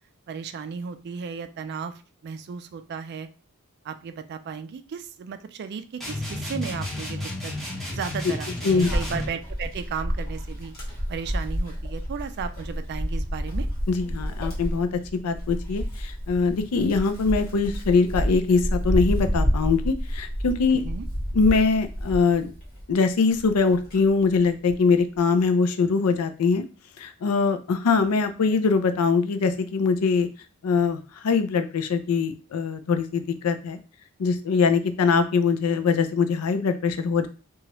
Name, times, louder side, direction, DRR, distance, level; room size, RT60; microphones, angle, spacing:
voice 1, 0.3-3.3 3.8-7.5 7.9-10.7 11.1-13.7 20.7-21.1, right 6 dB, 50° right, 10 dB, 0.3 m, -35 dB
sound 1, 6.0-9.4, left 1 dB, ahead, 0.9 m, -32 dB
voice 2, 8.6-9.0 13.9-20.8 21.3-22.5 22.9-26.6 27.0-30.3 30.6-33.8 34.2-37.3, left 4 dB, 85° left, 10 dB, 0.4 m, -22 dB
Wind, 8.8-22.9 23.4-24.9, equal, 45° left, 1.3 m, -29 dB
2.9 x 2.3 x 2.9 m, 0.35 s
head